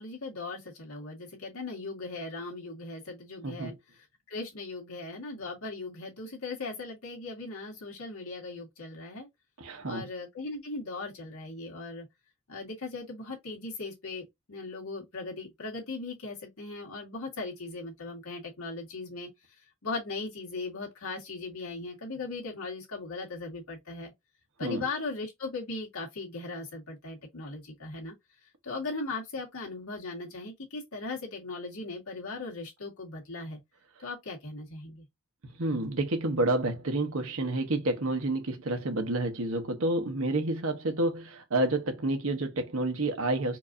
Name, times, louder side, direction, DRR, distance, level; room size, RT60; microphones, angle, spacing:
voice 1, 0.0-9.3 9.9-12.1 12.5-19.3 19.8-24.1 24.6-28.1 28.6-33.6 34.0-35.1, left 3 dB, 85° left, 1.7 m, -38 dB
voice 2, 3.4-3.8 9.6-10.1 24.6-24.8 35.4-43.6, right 2 dB, 70° right, 0.9 m, -29 dB
4.5 x 2.6 x 2.5 m
head